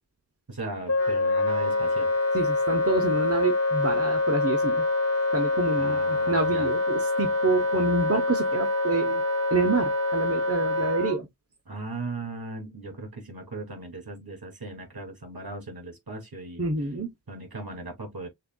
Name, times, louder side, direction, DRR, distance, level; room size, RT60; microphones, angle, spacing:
voice 1, 0.5-2.1 5.8-6.7 11.7-16.6 17.3-18.3, right 2 dB, 55° right, 2.2 m, -38 dB
Wind instrument woodwind instrument, 0.9-11.2, left 2 dB, 35° left, 1.5 m, -25 dB
voice 2, 2.3-4.8 5.3-9.2 9.5-11.3 16.6-17.1, right 3 dB, 35° right, 1.0 m, -27 dB
6.5 x 2.6 x 2.3 m
wide cardioid pair, 65°, 43 cm